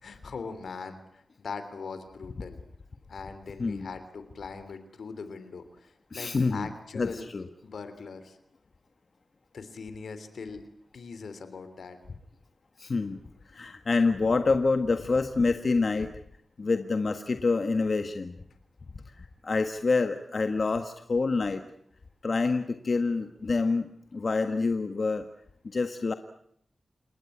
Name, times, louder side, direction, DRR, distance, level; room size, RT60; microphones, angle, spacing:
voice 1, 0.0-2.6 3.1-7.3 7.6-8.4 9.5-10.6 10.9-12.0, left 5 dB, 85° left, 11 dB, 3.3 m, -41 dB
voice 2, 3.6-3.9 6.1-7.5 12.8-13.2 13.4-16.1 16.6-18.4 19.0-21.6 22.2-25.3 25.6-26.1, left 3 dB, 55° left, 8 dB, 1.5 m, -27 dB
29.5 x 18.5 x 8.6 m, 0.70 s
cardioid pair, 65°, 0 cm